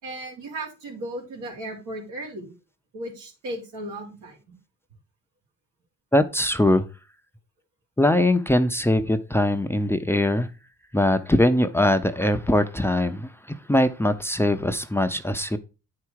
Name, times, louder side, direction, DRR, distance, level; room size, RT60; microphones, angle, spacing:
voice 1, 0.0-2.5 2.9-4.6, right 1 dB, 80° right, 3.6 m, -36 dB
voice 2, 6.1-6.8 8.0-10.5 10.9-13.3 13.7-15.6, left 1 dB, 10° left, 0.6 m, -21 dB
9.6 x 4.8 x 4.6 m
cardioid pair, 90°, 30 cm